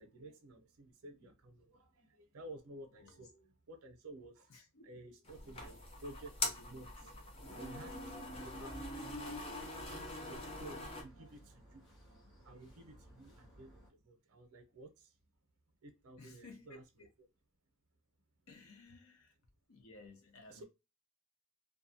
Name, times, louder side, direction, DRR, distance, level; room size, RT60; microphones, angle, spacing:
voice 1, 0.0-4.6 4.8-9.5 9.8-15.1 15.8-16.8 20.5-20.6, right 1 dB, 90° right, 0.6 m, -54 dB
voice 2, 4.5-4.9 5.5-5.6 8.6-8.7 10.7-10.8 16.2-17.1 18.5-19.4 19.7-20.6, left 3 dB, 75° left, 0.7 m, -56 dB
sound 1, 5.3-11.0, left 1 dB, 25° left, 0.5 m, -43 dB
sound 2, 7.7-13.9, equal, 50° left, 1.3 m, -57 dB
2.5 x 2.3 x 2.6 m
head